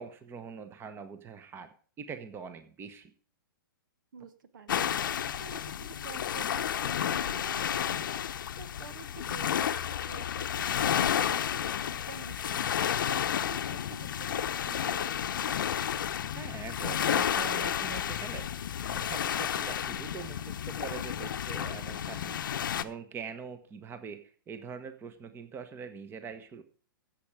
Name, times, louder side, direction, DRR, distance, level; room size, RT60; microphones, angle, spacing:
voice 1, 0.0-3.1 16.3-18.5 18.8-26.6, right 6 dB, 20° right, 10 dB, 1.3 m, -43 dB
voice 2, 4.1-15.4, right 6 dB, 60° right, 12 dB, 1.5 m, -49 dB
sound 1, 4.7-22.8, left 9 dB, 65° left, 0.9 m, -31 dB
15.0 x 7.6 x 4.9 m, 0.43 s
figure-of-eight pair, 120°, 12 cm